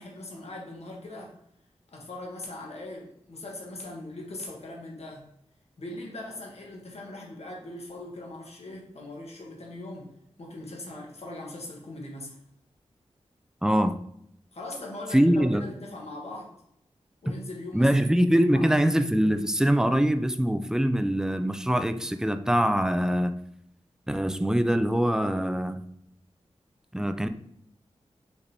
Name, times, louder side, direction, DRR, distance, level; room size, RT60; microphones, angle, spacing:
voice 1, 0.0-1.3 1.9-5.2 5.8-10.1 10.4-12.4 14.5-16.6 17.2-18.2 18.5-18.7, left 2 dB, 65° left, -1 dB, 1.2 m, -40 dB
voice 2, 13.6-14.0 15.1-15.6 17.7-23.3 24.1-25.8 26.9-27.3, equal, 5° right, 8 dB, 0.4 m, -23 dB
5.0 x 3.3 x 2.7 m, 0.72 s
wide cardioid pair, 60°, 11 cm